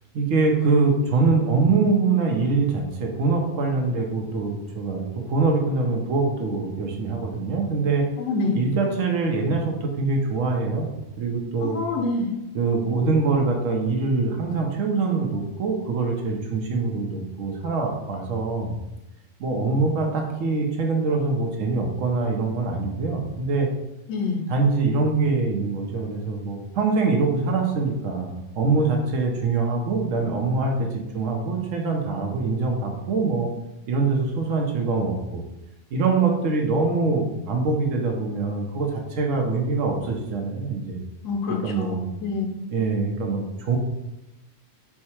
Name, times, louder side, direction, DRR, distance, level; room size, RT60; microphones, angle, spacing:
voice 1, 0.1-8.1 8.5-11.8 12.5-18.7 19.4-23.7 24.5-33.5 33.9-35.4 35.9-41.0 41.5-42.0 42.7-43.8, right 4 dB, 75° right, 1 dB, 1.0 m, -24 dB
voice 2, 8.2-8.6 11.6-12.3 24.1-24.4 41.2-42.5, left 3 dB, 85° left, 2 dB, 1.1 m, -26 dB
4.6 x 2.2 x 4.3 m, 0.93 s
omnidirectional pair, 1.4 m